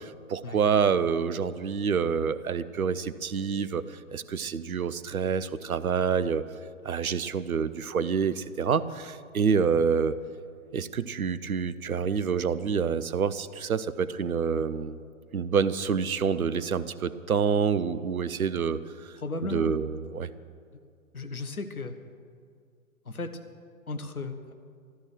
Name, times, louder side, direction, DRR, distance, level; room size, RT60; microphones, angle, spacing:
voice 1, 0.0-6.4 6.8-10.2 10.7-15.0 15.3-19.1 19.5-20.3, right 6 dB, 75° right, 15 dB, 0.8 m, -27 dB
voice 2, 19.2-19.8 21.1-21.9 23.0-23.4 23.9-24.5, left 3 dB, 80° left, 8 dB, 1.3 m, -35 dB
13.0 x 12.5 x 6.3 m, 2.2 s
figure-of-eight pair, 115°, 43 cm